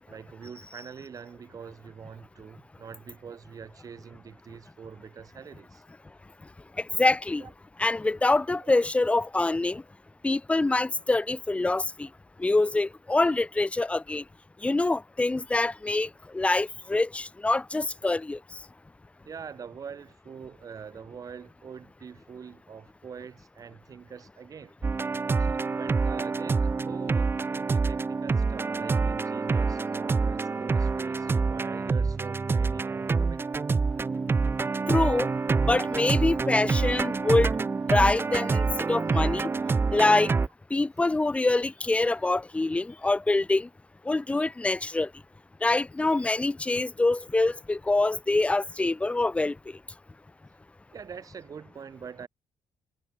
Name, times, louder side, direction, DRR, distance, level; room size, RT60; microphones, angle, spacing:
voice 1, 0.0-5.8 7.4-7.5 8.6-8.7 19.2-24.8 25.4-33.6 50.9-52.3, right 6 dB, 40° right, 6.1 m, -44 dB
voice 2, 7.0-7.4 7.8-9.8 10.2-12.1 12.4-14.2 14.6-18.4 34.9-35.3 35.7-37.5 37.9-39.5 39.9-40.3 40.7-43.7 44.1-45.1 45.6-49.5, left 2 dB, 15° left, 0.7 m, -25 dB
sound 1, 24.8-40.5, right 4 dB, 25° right, 1.8 m, -26 dB
cardioid pair, 110°, 9 cm